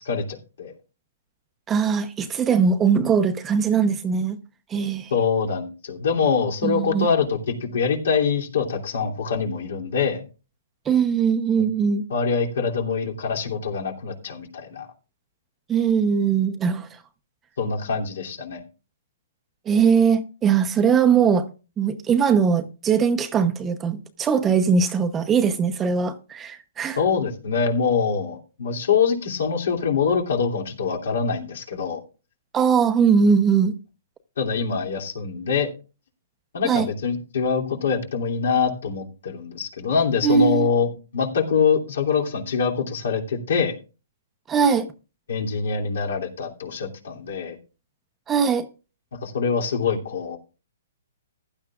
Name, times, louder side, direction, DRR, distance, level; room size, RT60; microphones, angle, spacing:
voice 1, 0.1-0.7 5.1-10.2 11.6-11.7 12.1-14.9 17.6-18.6 27.0-32.0 34.4-35.7 36.5-43.7 45.3-47.6 49.2-50.4, left 5 dB, 70° left, 2.9 m, -24 dB
voice 2, 1.7-4.4 4.7-5.1 6.6-7.1 10.9-12.0 15.7-16.9 19.7-21.5 21.8-27.0 32.5-33.7 36.6-36.9 40.2-40.7 44.5-44.9 48.3-48.7, right 6 dB, 15° right, 0.8 m, -20 dB
15.5 x 11.5 x 2.5 m
hypercardioid pair, 155°, 0 cm